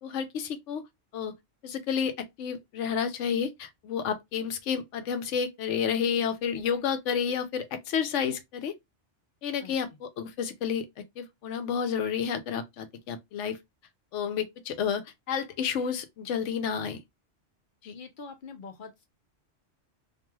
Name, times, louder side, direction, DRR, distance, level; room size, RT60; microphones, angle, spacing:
voice 1, 0.0-0.8 1.1-1.3 1.6-8.7 9.4-10.9 11.2-13.6 14.1-17.0 17.8-17.9, left 7 dB, 80° left, 0.9 m, -30 dB
voice 2, 17.9-19.0, left 4 dB, 55° left, 0.6 m, -44 dB
3.1 x 2.6 x 2.2 m
omnidirectional pair, 1.3 m